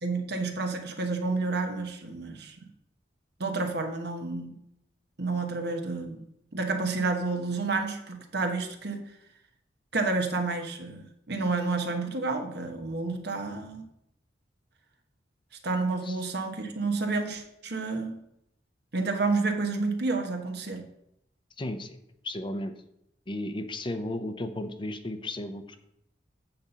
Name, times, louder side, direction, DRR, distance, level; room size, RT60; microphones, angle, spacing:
voice 1, 0.0-2.6 3.4-4.5 5.2-6.2 6.5-9.0 9.9-13.9 15.6-18.2 18.9-20.8, right 3 dB, 60° right, 5 dB, 1.2 m, -30 dB
voice 2, 21.6-22.0 22.2-22.7 23.3-25.8, left 1 dB, 25° left, 8 dB, 0.6 m, -34 dB
8.3 x 4.3 x 6.9 m, 0.79 s
head